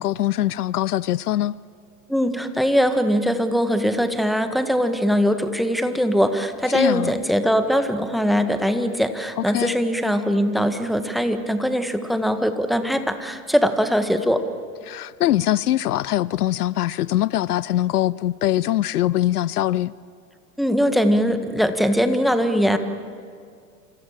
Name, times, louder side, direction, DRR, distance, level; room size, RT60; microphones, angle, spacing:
voice 1, 0.0-1.5 6.7-7.1 9.4-9.8 14.9-19.9, left 13 dB, 75° left, 0.6 m, -22 dB
voice 2, 2.1-14.5 20.6-22.8, equal, ahead, 1.7 m, -21 dB
27.5 x 26.5 x 7.6 m
figure-of-eight pair, 85°, 46 cm